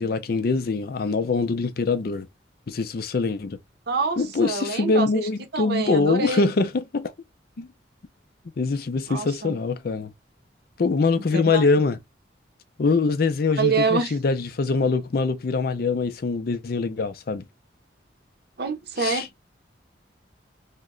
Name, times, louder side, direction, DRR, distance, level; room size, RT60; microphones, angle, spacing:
voice 1, 0.0-2.3 2.7-3.6 4.2-7.1 7.6-7.7 8.6-10.1 10.8-12.0 12.8-17.4 19.0-19.3, left 4 dB, 50° left, 0.4 m, -23 dB
voice 2, 3.9-6.5 9.1-9.6 11.3-11.7 13.6-14.2 18.6-19.3, right 4 dB, 60° right, 0.7 m, -26 dB
2.9 x 2.1 x 3.7 m
head